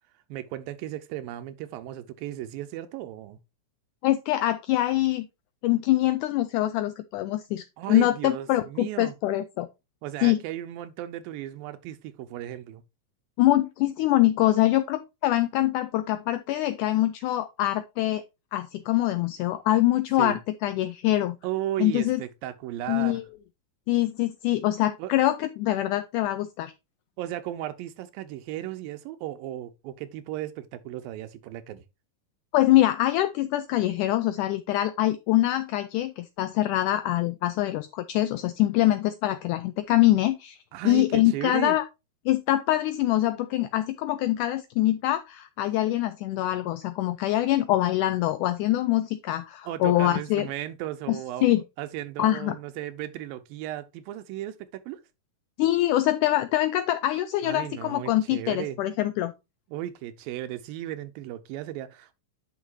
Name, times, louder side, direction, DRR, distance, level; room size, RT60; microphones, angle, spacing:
voice 1, 0.3-3.4 7.8-9.1 10.0-12.8 20.2-20.4 21.4-23.2 25.0-25.1 27.2-31.8 40.7-41.8 49.6-55.0 57.4-58.8 59.7-62.1, right 13 dB, 85° right, 2.5 m, -35 dB
voice 2, 4.0-5.3 5.6-9.7 10.2-10.4 13.4-18.2 18.5-21.4 21.8-22.2 22.9-23.2 23.9-26.7 32.5-40.6 40.9-41.8 42.3-50.5 51.1-51.6 52.2-52.6 55.6-59.3, left 15 dB, 80° left, 1.8 m, -24 dB
9.7 x 6.0 x 2.6 m
omnidirectional pair, 4.1 m